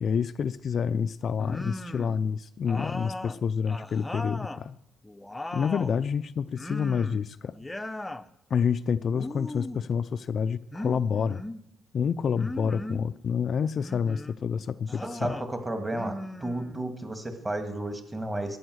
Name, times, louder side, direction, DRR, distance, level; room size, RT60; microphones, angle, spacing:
voice 1, 0.0-4.8 5.5-7.5 8.5-11.4 11.9-15.4, left 6 dB, 55° left, 13 dB, 0.4 m, -28 dB
sound 1, 1.4-2.2 2.7-4.6 5.0-6.0 6.6-7.2 7.5-8.3 9.1-9.9 10.7-11.6 12.4-13.1 13.7-14.4 14.9-15.5 15.9-17.0, left 1 dB, 10° left, 0.7 m, -38 dB
voice 2, 15.2-16.1 16.4-18.6, right 1 dB, 20° right, 6 dB, 2.1 m, -32 dB
13.5 x 9.2 x 6.3 m, 0.82 s
cardioid pair, 90°, 0 cm